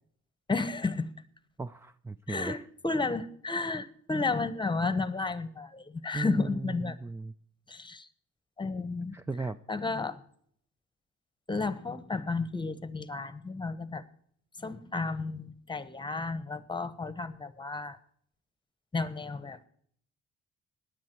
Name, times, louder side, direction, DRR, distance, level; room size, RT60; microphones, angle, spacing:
voice 1, 0.5-1.1 2.3-7.0 7.7-8.1 8.6-9.2 9.7-10.2 11.5-14.0 14.6-18.0 18.9-19.6, left 3 dB, 15° left, 15 dB, 1.1 m, -32 dB
voice 2, 1.6-2.6 6.1-7.3 9.1-9.6, right 3 dB, 10° right, 13 dB, 0.4 m, -36 dB
17.0 x 10.0 x 4.6 m, 0.63 s
cardioid pair, 90°, 30 cm